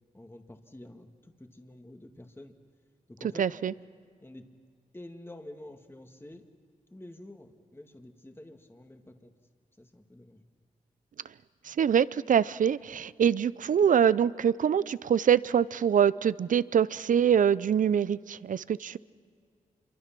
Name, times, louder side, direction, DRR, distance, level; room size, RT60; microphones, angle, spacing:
voice 1, 0.1-2.5 3.1-3.4 4.2-4.5 4.9-6.4 6.9-9.3 9.8-10.5, left 1 dB, 15° left, 5 dB, 2.0 m, -48 dB
voice 2, 3.4-3.7 11.6-19.0, right 8 dB, 70° right, 18 dB, 0.5 m, -24 dB
27.0 x 23.5 x 6.0 m, 2.2 s
cardioid pair, 50°, 14 cm